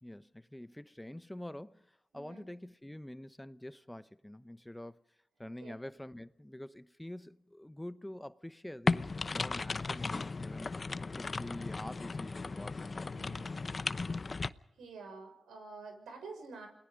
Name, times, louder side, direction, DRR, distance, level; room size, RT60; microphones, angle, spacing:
voice 1, 0.0-5.0 5.4-13.1, left 1 dB, 10° left, 0.9 m, -46 dB
voice 2, 2.1-2.5 5.6-5.8 13.1-13.5 14.8-16.7, right 4 dB, 90° right, 6.6 m, -48 dB
sound 1, 8.9-14.5, left 3 dB, 45° left, 0.9 m, -36 dB
29.0 x 20.0 x 5.3 m
cardioid pair, 55°, 0 cm